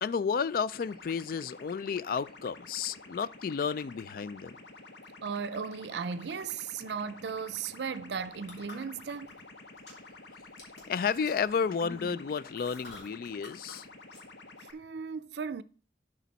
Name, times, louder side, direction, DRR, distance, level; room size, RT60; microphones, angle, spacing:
voice 1, 0.0-4.5 10.9-13.9, left 6 dB, 50° left, 0.3 m, -32 dB
sound 1, 0.7-14.7, left 3 dB, 85° left, 1.2 m, -50 dB
voice 2, 5.2-9.3 14.7-15.6, right 6 dB, 75° right, 0.5 m, -36 dB
sound 2, 8.1-9.4 9.7-10.2 10.6-13.8 14.1-14.2, left 2 dB, 70° left, 3.2 m, -48 dB
11.5 x 5.1 x 4.0 m
head